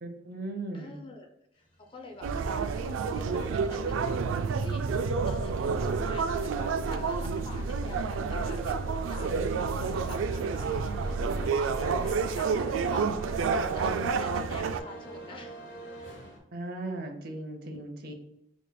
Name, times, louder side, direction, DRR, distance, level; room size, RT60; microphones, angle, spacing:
voice 1, 0.0-1.0 16.5-18.1, right 2 dB, 50° right, 5 dB, 0.7 m, -37 dB
voice 2, 0.7-1.3 1.5-15.6, left 3 dB, 25° left, 3 dB, 0.5 m, -46 dB
sound 1, 1.7-16.4, right 2 dB, 80° left, 1.4 m, -47 dB
sound 2, 2.2-14.8, right 5 dB, 85° right, 0.3 m, -29 dB
5.1 x 3.1 x 2.2 m, 0.79 s
head